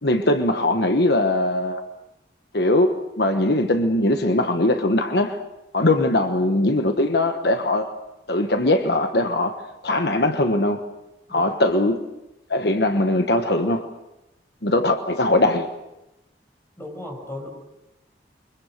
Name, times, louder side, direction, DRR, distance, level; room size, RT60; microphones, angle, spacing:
voice 1, 0.0-1.8 2.5-5.4 5.7-8.0 8.3-10.8 11.3-12.0 12.5-13.9 14.6-15.7, left 1 dB, 60° left, 7 dB, 1.2 m, -21 dB
voice 2, 11.3-11.6 16.8-17.5, left 1 dB, 15° left, 2 dB, 6.7 m, -36 dB
28.5 x 24.0 x 6.7 m, 0.95 s
head